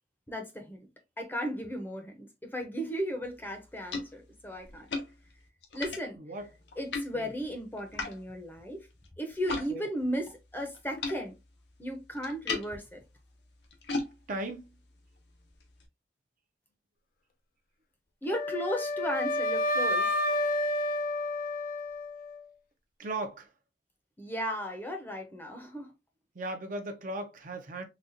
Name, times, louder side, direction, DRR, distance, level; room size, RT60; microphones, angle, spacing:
voice 1, 0.3-0.8 1.2-4.9 5.7-6.2 6.8-8.9 9.2-11.3 11.8-13.0 18.2-20.1 24.2-25.9, equal, 10° left, 0.6 m, -35 dB
sound 1, 3.3-9.7 10.0-15.9, left 3 dB, 75° left, 0.8 m, -40 dB
voice 2, 14.3-14.8 23.0-23.5 26.3-27.8, right 2 dB, 50° right, 0.6 m, -37 dB
Wind instrument woodwind instrument, 18.3-22.4, left 1 dB, 50° left, 0.5 m, -30 dB
4.0 x 2.3 x 2.6 m
head